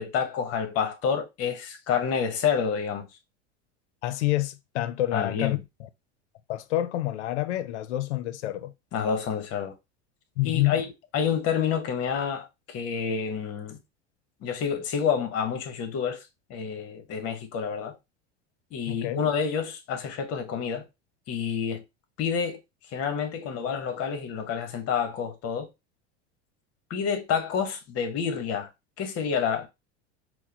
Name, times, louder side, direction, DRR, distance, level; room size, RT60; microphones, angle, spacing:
voice 1, 0.0-3.1 5.1-5.6 8.9-9.7 10.4-10.9 11.1-13.8 14.4-16.2 16.5-18.0 18.7-20.9 21.3-21.8 22.2-22.6 22.9-25.7 26.9-28.7 29.0-29.7, left 7 dB, 45° left, 0.9 m, -28 dB
voice 2, 4.0-5.6 6.5-8.7 10.4-10.8 18.9-19.3, left 15 dB, 90° left, 0.5 m, -28 dB
4.5 x 2.0 x 2.8 m
hypercardioid pair, 105°, 34 cm